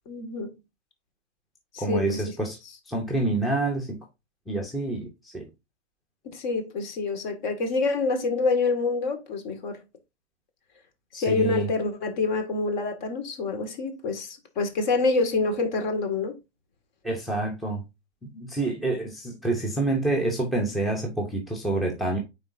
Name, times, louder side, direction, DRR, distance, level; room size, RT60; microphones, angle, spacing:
voice 1, 0.1-0.5 1.7-2.2 6.2-9.8 11.1-16.3, left 3 dB, 40° left, 1.9 m, -27 dB
voice 2, 1.8-2.6 2.9-4.0 4.5-5.5 11.1-11.7 17.0-17.8 18.3-22.2, right 2 dB, ahead, 0.7 m, -27 dB
9.5 x 4.1 x 2.6 m
hypercardioid pair, 130°, 34 cm